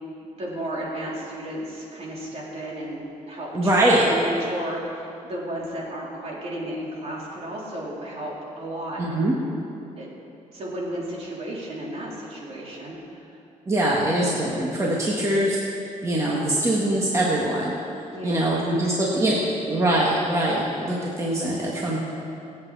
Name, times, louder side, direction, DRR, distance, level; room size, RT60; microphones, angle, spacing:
voice 1, 0.2-9.3 10.0-10.1 10.5-13.0 18.1-19.5, right 1 dB, 50° right, -4 dB, 3.8 m, -33 dB
voice 2, 3.5-4.0 9.0-9.3 13.7-15.6 16.0-17.7 18.2-19.4 19.7-22.0, right 1 dB, 20° right, -4 dB, 1.8 m, -22 dB
25.0 x 8.3 x 4.2 m, 2.7 s
cardioid pair, 110°, 13 cm